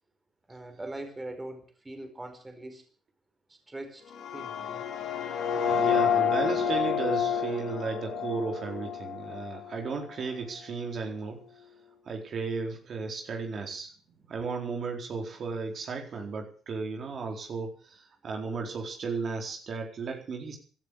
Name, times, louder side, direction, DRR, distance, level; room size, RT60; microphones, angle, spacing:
voice 1, 0.5-2.8 3.5-4.0 4.3-4.9, right 1 dB, 15° right, 5 dB, 4.7 m, -41 dB
sound 1, 4.1-10.1, left 7 dB, 65° left, 3.5 m, -29 dB
voice 2, 5.5-11.4 12.1-13.9 14.3-20.6, right 4 dB, 50° right, 2 dB, 4.3 m, -34 dB
17.0 x 12.5 x 6.7 m, 0.41 s
cardioid pair, 100°, 0 cm